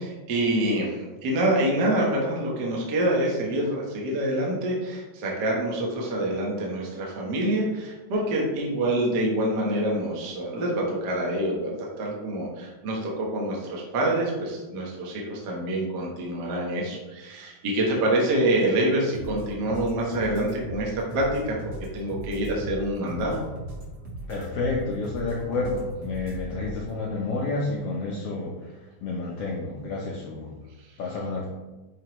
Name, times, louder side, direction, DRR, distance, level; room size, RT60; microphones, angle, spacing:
voice 1, 0.0-23.4, right 1 dB, 70° right, -3 dB, 1.0 m, -26 dB
sound 1, 19.1-26.9, right 1 dB, 45° right, 1.4 m, -38 dB
voice 2, 24.3-30.5 31.0-31.5, left 3 dB, 80° left, -3 dB, 1.3 m, -30 dB
9.0 x 3.6 x 3.0 m, 1.2 s
omnidirectional pair, 3.6 m